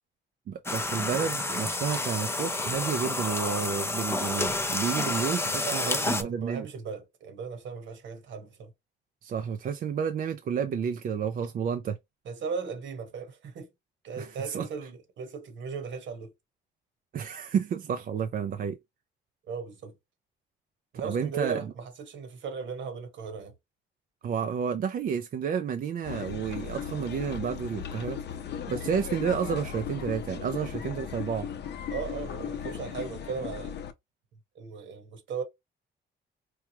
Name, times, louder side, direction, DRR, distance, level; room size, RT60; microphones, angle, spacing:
voice 1, 0.5-6.7 9.2-12.0 14.2-14.7 17.1-18.8 21.0-21.7 24.2-28.2 28.7-31.5, right 7 dB, 45° right, 0.4 m, -31 dB
sound 1, 0.6-6.2, left 2 dB, 10° left, 0.5 m, -30 dB
voice 2, 5.6-8.7 12.2-13.7 14.0-16.3 19.5-19.9 20.9-23.5 31.9-33.7 34.5-35.4, right 5 dB, 70° right, 1.2 m, -37 dB
sound 2, 26.0-33.9, left 8 dB, 60° left, 0.6 m, -37 dB
4.6 x 2.2 x 2.8 m
cardioid pair, 90°, 20 cm